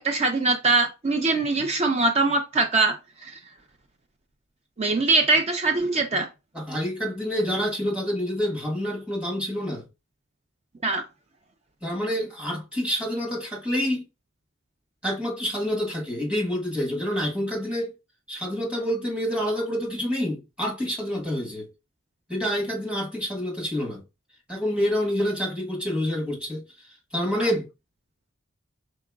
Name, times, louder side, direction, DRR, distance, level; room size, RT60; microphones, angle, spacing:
voice 1, 0.0-2.9 3.2-3.4 4.8-6.3 10.8-11.0 27.4-27.5, right 3 dB, 30° right, 0.5 m, -22 dB
voice 2, 6.5-9.8 11.8-14.0 15.0-17.9 18.3-21.7 22.3-24.0 24.5-26.6 27.1-27.7, equal, 5° right, 1.3 m, -27 dB
4.7 x 3.9 x 2.3 m
head